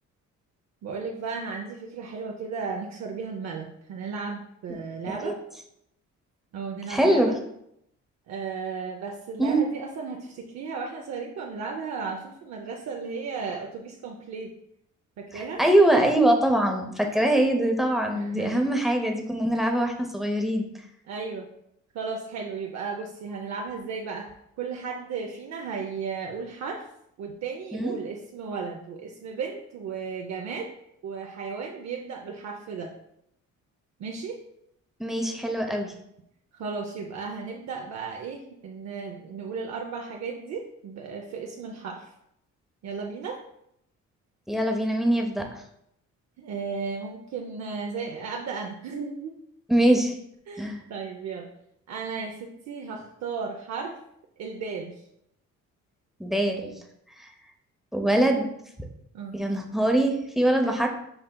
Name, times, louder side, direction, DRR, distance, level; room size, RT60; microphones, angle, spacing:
voice 1, 0.8-5.4 6.5-7.3 8.3-14.5 15.2-15.6 18.1-18.6 21.1-21.5 21.9-26.8 27.2-30.7 31.0-32.9 34.0-34.4 36.5-42.1 42.8-43.4 46.4-49.3 50.5-51.5 51.9-54.0 54.4-54.9 59.1-59.3 60.6-60.9, right 5 dB, 60° right, 1 dB, 0.6 m, -35 dB
voice 2, 6.9-7.3 9.4-9.6 15.3-20.6 27.7-27.9 35.0-35.9 44.5-45.6 49.7-50.1 50.6-50.8 56.2-56.7 57.2-57.3 57.9-58.5 59.3-60.9, right 1 dB, ahead, 4 dB, 0.6 m, -23 dB
7.6 x 2.7 x 2.2 m, 0.76 s
cardioid pair, 90°, 30 cm